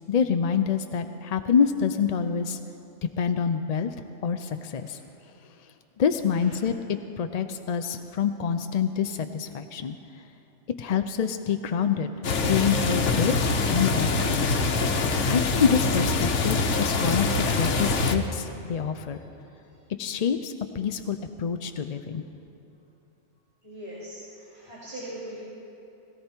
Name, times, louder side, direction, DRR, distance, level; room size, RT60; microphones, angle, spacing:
voice 1, 0.1-2.6 3.2-3.9 4.2-5.0 6.0-6.7 7.2-10.0 10.8-12.1 12.5-13.4 13.7-14.6 15.3-19.2 20.0-22.2, left 7 dB, 55° left, 8 dB, 0.4 m, -26 dB
sound 1, 12.2-18.1, left 3 dB, 80° left, 1.3 m, -24 dB
voice 2, 23.6-25.4, right 1 dB, 25° right, -10 dB, 3.2 m, -41 dB
18.5 x 17.0 x 4.5 m, 2.9 s
omnidirectional pair, 1.2 m